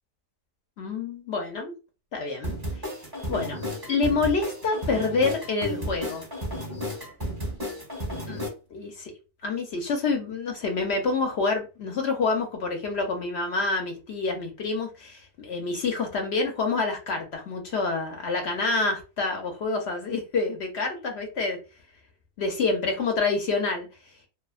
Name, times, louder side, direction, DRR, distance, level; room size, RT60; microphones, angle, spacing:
voice 1, 0.8-1.7 2.1-2.6 3.3-3.6 3.9-6.2 8.3-8.4 8.7-9.1 9.4-21.6 22.4-23.9, left 3 dB, 60° left, 0.7 m, -27 dB
sound 1, 2.4-8.5, equal, 30° right, 0.4 m, -33 dB
2.7 x 2.2 x 2.3 m
omnidirectional pair, 1.6 m